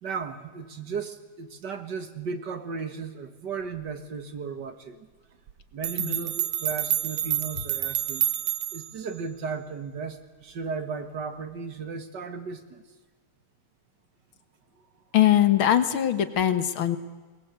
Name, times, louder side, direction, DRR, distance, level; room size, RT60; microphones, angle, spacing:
voice 1, 0.0-5.1 5.7-8.3 8.7-12.8, right 5 dB, 55° right, 9 dB, 2.0 m, -35 dB
sound 1, 5.5-5.6 5.8-9.0, right 11 dB, 90° right, 1.9 m, -28 dB
voice 2, 15.1-17.0, left 11 dB, 75° left, 11 dB, 2.1 m, -21 dB
22.5 x 20.0 x 8.3 m, 1.3 s
omnidirectional pair, 2.3 m